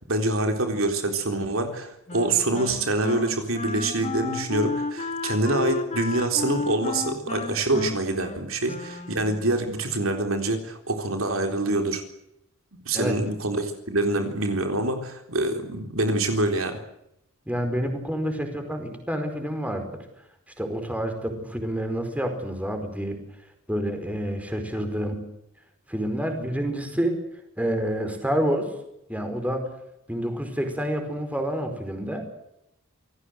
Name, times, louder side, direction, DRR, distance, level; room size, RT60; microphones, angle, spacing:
voice 1, 0.1-12.0 12.9-16.8, right 2 dB, 65° right, 5 dB, 3.9 m, -25 dB
Wind instrument woodwind instrument, 2.1-9.5, left 2 dB, 30° left, 2.5 m, -32 dB
voice 2, 5.4-5.8 12.9-13.1 17.5-19.9 20.6-23.2 23.7-25.3 25.9-27.2 27.6-28.7 29.1-29.7 30.1-32.2, equal, 5° right, 5 dB, 5.0 m, -28 dB
28.0 x 18.0 x 8.0 m, 0.81 s
head